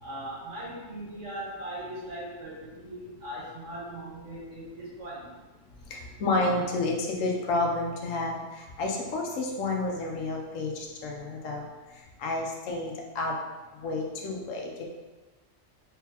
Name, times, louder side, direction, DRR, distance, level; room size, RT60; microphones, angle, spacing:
voice 1, 0.0-5.3, right 1 dB, 75° right, -6 dB, 1.7 m, -39 dB
voice 2, 5.9-11.7 12.2-13.3 13.7-14.9, left 2 dB, 90° left, 0 dB, 1.1 m, -30 dB
3.8 x 3.2 x 2.9 m, 1.2 s
omnidirectional pair, 1.3 m